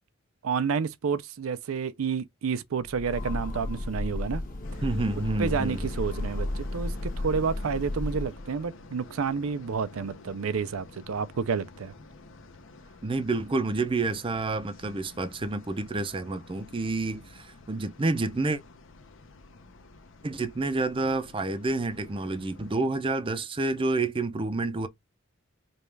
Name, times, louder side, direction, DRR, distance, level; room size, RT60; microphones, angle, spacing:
voice 1, 0.4-4.4 5.4-11.9, right 6 dB, 75° right, 0.5 m, -30 dB
Train, 2.8-8.5, left 1 dB, 40° left, 1.3 m, -33 dB
sound 1, 4.6-22.8, left 3 dB, 60° left, 0.7 m, -49 dB
voice 2, 4.8-5.9 13.0-18.6 20.2-24.9, right 2 dB, 25° right, 0.5 m, -29 dB
5.2 x 2.4 x 3.2 m
head